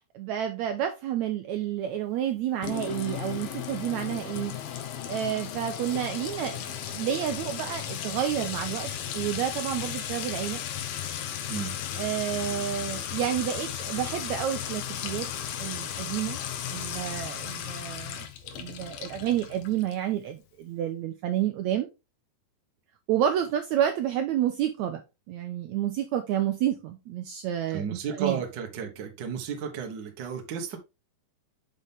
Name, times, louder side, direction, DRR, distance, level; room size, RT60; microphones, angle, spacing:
voice 1, 0.1-4.5 5.1-10.6 12.0-15.3 15.6-16.4 16.7-18.3 18.5-21.9 23.1-25.0 25.3-28.4, right 10 dB, 90° right, 1.6 m, -30 dB
Sink (filling or washing) / Trickle dribble / Fill (with liquid), 2.6-20.1, left 10 dB, 85° left, 2.7 m, -35 dB
voice 2, 27.7-30.8, right 7 dB, 70° right, 1.0 m, -33 dB
6.2 x 5.5 x 3.5 m
omnidirectional pair, 4.0 m